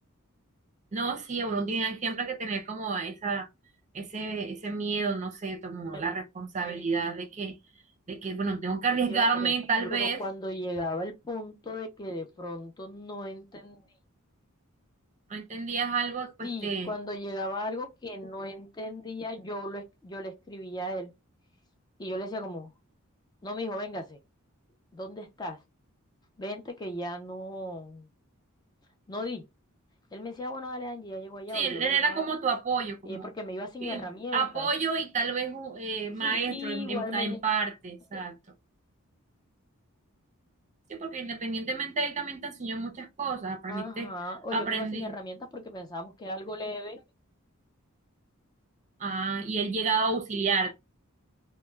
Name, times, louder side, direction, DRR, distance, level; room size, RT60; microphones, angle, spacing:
voice 1, 0.9-3.5 3.9-7.6 8.1-10.2 15.3-16.9 31.5-33.3 33.8-34.0 34.3-38.3 40.9-44.1 44.5-45.1 49.0-50.7, right 4 dB, 35° right, 0.5 m, -30 dB
voice 2, 9.1-9.5 9.8-13.8 16.4-21.1 22.0-22.7 23.4-24.2 24.9-25.6 26.4-28.1 29.1-29.4 30.1-32.3 33.1-34.7 36.2-37.4 38.1-38.2 43.7-47.0, left 1 dB, 20° left, 0.4 m, -37 dB
2.2 x 2.1 x 3.0 m
head